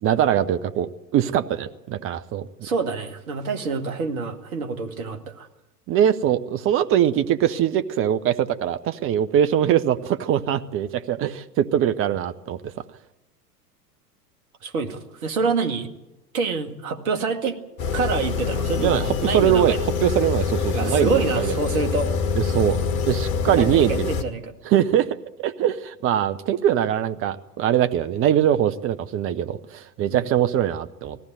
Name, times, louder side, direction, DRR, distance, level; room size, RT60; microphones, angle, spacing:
voice 1, 0.0-2.5 5.9-12.7 18.8-21.5 22.4-22.8 23.1-24.1 24.6-25.1 25.4-31.2, right 10 dB, 30° right, 12 dB, 0.8 m, -22 dB
voice 2, 2.6-5.5 14.6-15.9 16.3-17.6 17.9-19.9 20.7-22.1 23.5-24.5 30.1-30.3, right 4 dB, 65° right, 7 dB, 2.1 m, -26 dB
sound 1, 17.8-24.2, left 5 dB, 60° left, 1.7 m, -25 dB
19.5 x 15.0 x 9.0 m, 0.96 s
figure-of-eight pair, 90°, 47 cm